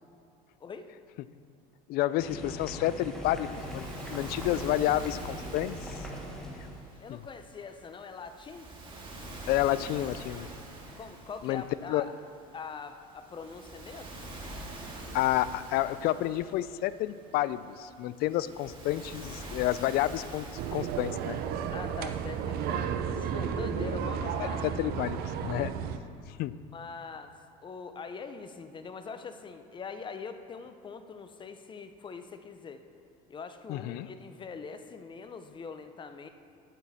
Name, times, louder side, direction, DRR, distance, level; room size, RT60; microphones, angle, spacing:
voice 1, 0.6-0.9 7.0-8.7 11.0-12.1 12.5-14.2 21.7-24.8 26.7-32.8 33.3-36.3, left 5 dB, 25° left, 9 dB, 0.7 m, -43 dB
voice 2, 1.9-6.1 7.1-7.2 9.5-10.5 11.4-11.6 11.9-12.0 15.1-21.4 24.6-25.7 26.3-26.5 33.7-34.1, left 14 dB, 55° left, 16 dB, 0.4 m, -30 dB
sound 1, 2.2-6.8, equal, 5° left, 1.6 m, -41 dB
Waves surf, 2.9-22.8, right 1 dB, 25° right, 2.1 m, -46 dB
sound 2, 20.6-26.0, right 7 dB, 55° right, 0.7 m, -33 dB
10.5 x 9.1 x 4.2 m, 2.4 s
supercardioid pair, 105°, 18 cm